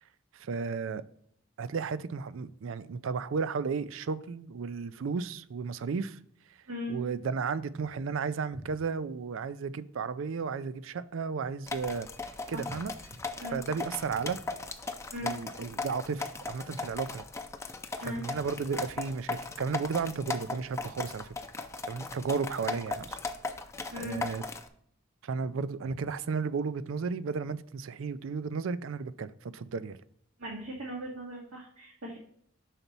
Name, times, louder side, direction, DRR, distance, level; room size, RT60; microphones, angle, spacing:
voice 1, 0.3-1.0 1.6-6.2 6.9-12.1 12.5-12.9 13.5-14.4 15.2-17.2 18.1-21.3 21.9-23.2 24.0-24.4 25.2-30.0, right 5 dB, 70° right, 0.4 m, -33 dB
voice 2, 6.7-7.0 12.5-12.7 13.4-13.6 15.1-15.3 18.0-18.2 23.9-24.2 30.4-32.2, equal, 85° right, 1.4 m, -38 dB
sound 1, 11.7-24.7, left 3 dB, 15° left, 0.5 m, -38 dB
5.8 x 4.0 x 5.3 m
head